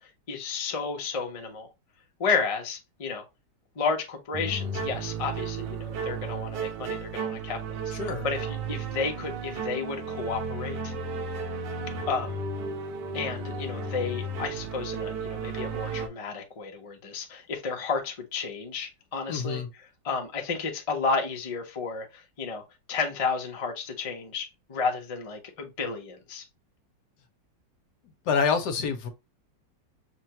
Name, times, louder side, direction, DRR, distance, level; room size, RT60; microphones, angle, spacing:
voice 1, 0.0-1.7 2.2-3.2 3.8-10.9 12.1-12.4 13.1-19.6 20.0-22.6 22.9-26.4, left 4 dB, 55° left, 0.3 m, -32 dB
sound 1, 4.3-16.1, right 4 dB, 75° right, 1.4 m, -34 dB
voice 2, 7.9-8.3 19.3-19.7 28.3-29.1, left 5 dB, 70° left, 1.2 m, -27 dB
5.7 x 2.2 x 2.8 m
omnidirectional pair, 2.0 m